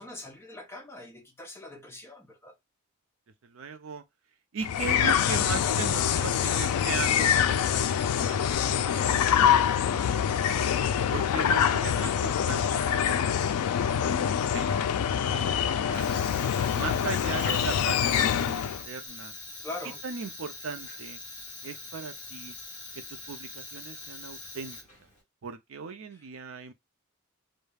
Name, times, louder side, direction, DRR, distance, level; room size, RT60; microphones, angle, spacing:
voice 1, 0.0-2.6 15.4-15.7 19.6-20.0, left 2 dB, 10° left, 0.5 m, -42 dB
voice 2, 3.4-4.0 4.5-7.8 8.1-8.4 8.6-10.7 11.1-14.8 15.3-16.1 16.7-19.3 20.0-21.2 21.6-22.5 22.9-24.8 25.4-26.7, right 5 dB, 65° right, 0.5 m, -38 dB
sound 1, 4.6-18.8, left 8 dB, 90° left, 0.3 m, -25 dB
Fire, 15.9-25.2, left 2 dB, 35° left, 1.2 m, -43 dB
2.3 x 2.2 x 3.2 m
head